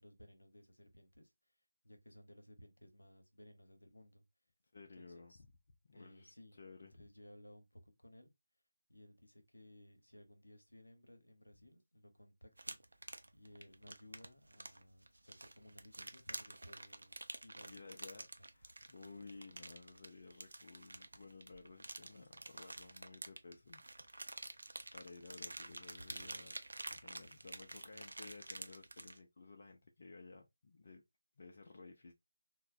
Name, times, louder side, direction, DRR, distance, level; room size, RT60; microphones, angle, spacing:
voice 1, 0.0-1.3 1.8-4.2 4.8-5.4 5.9-8.3 8.9-12.8 13.3-17.2 17.4-18.5 19.0-19.3, left 1 dB, 80° left, 0.7 m, -60 dB
voice 2, 4.7-5.5 5.9-6.9 17.7-18.3 18.5-23.8 24.1-26.6 26.9-31.0 31.4-32.1, left 3 dB, 45° left, 0.4 m, -56 dB
sound 1, 12.6-29.2, right 2 dB, 65° right, 0.4 m, -49 dB
3.1 x 2.0 x 2.3 m
figure-of-eight pair, 155°, 0 cm